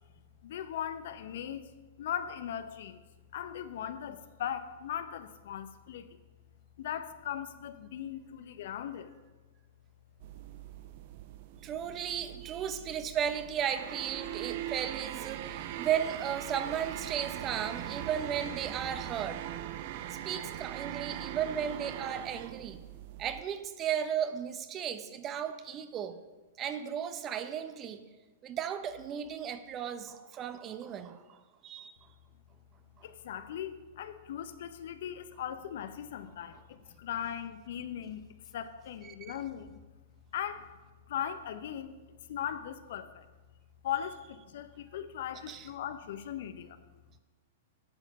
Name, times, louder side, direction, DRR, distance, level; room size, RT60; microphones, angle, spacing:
voice 1, 0.4-1.7 2.0-3.0 3.3-6.1 6.8-9.1 33.0-38.3 38.5-39.8 40.3-40.6 41.1-42.0 42.3-43.3 43.8-46.8, left 9 dB, 65° left, 11 dB, 0.8 m, -38 dB
sound 1, 10.2-23.4, right 12 dB, 55° right, 0.6 m, -41 dB
voice 2, 11.6-19.4 20.2-22.8 23.2-26.2 26.6-28.0 28.4-31.4 31.6-31.9 33.0-33.1 39.2-39.4 45.5-45.7, right 9 dB, 30° right, 10 dB, 0.8 m, -35 dB
10.5 x 7.2 x 5.4 m, 1.2 s
hypercardioid pair, 115°, 0 cm